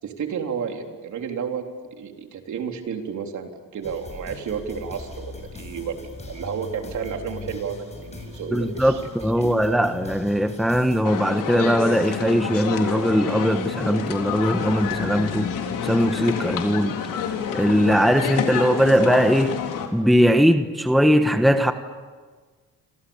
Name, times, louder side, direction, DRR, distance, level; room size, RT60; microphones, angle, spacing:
voice 1, 0.0-1.6 2.0-9.0 9.4-9.8, right 7 dB, 60° right, 3 dB, 3.8 m, -31 dB
sound 1, 3.8-11.0, left 3 dB, 20° left, 6.5 m, -40 dB
voice 2, 8.5-15.5 15.8-17.0 17.5-19.6 19.9-21.7, equal, ahead, 8 dB, 1.2 m, -20 dB
sound 2, 11.0-19.9, left 7 dB, 70° left, 3.8 m, -28 dB
28.5 x 27.0 x 7.2 m, 1.4 s
cardioid pair, 120°, 34 cm